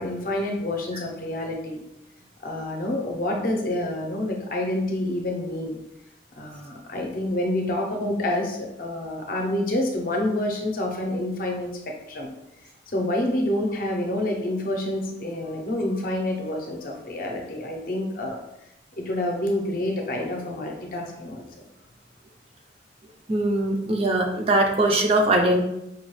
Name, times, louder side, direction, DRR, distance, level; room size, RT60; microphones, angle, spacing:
voice 1, 0.0-1.8 2.4-5.8 6.4-12.3 12.9-18.4 19.0-21.6, left 1 dB, 45° left, 2 dB, 0.6 m, -28 dB
voice 2, 23.3-25.6, right 1 dB, 30° right, 2 dB, 0.4 m, -21 dB
5.0 x 2.3 x 3.1 m, 0.86 s
head